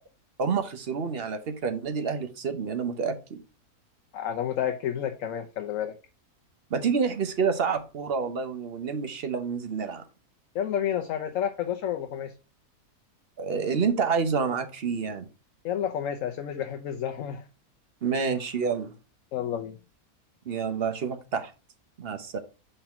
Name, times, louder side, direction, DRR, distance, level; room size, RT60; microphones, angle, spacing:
voice 1, 0.4-3.4 6.7-10.0 13.4-15.3 18.0-18.9 20.5-21.5 22.0-22.4, right 5 dB, 45° right, 1.0 m, -28 dB
voice 2, 4.1-6.0 10.5-12.3 15.6-17.4 19.3-19.8, left 9 dB, 65° left, 1.0 m, -30 dB
5.5 x 4.0 x 5.7 m
omnidirectional pair, 1.6 m